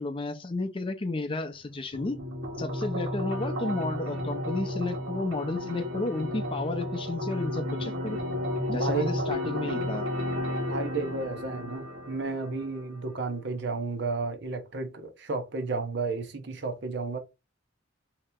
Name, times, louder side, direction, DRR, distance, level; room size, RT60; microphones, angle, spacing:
voice 1, 0.0-2.2 2.6-8.2 8.7-10.1, left 2 dB, 25° left, 0.5 m, -32 dB
sound 1, 1.9-12.9, left 1 dB, 90° right, 1.3 m, -33 dB
voice 2, 8.7-9.1 10.7-17.2, right 3 dB, 60° right, 0.7 m, -32 dB
3.2 x 2.9 x 3.6 m
head